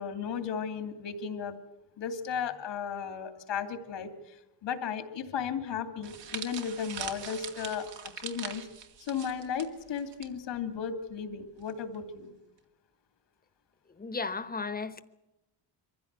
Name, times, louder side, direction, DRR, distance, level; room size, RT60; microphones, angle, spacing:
voice 1, 0.0-1.6 2.0-7.9 8.2-8.6 9.0-12.3, left 7 dB, 80° left, 2.8 m, -35 dB
sound 1, 6.0-10.3 10.6-10.8 11.7-12.0, right 8 dB, 75° right, 2.5 m, -42 dB
voice 2, 14.0-15.0, left 4 dB, 20° left, 1.1 m, -34 dB
23.5 x 15.5 x 8.2 m
cardioid pair, 125°, 43 cm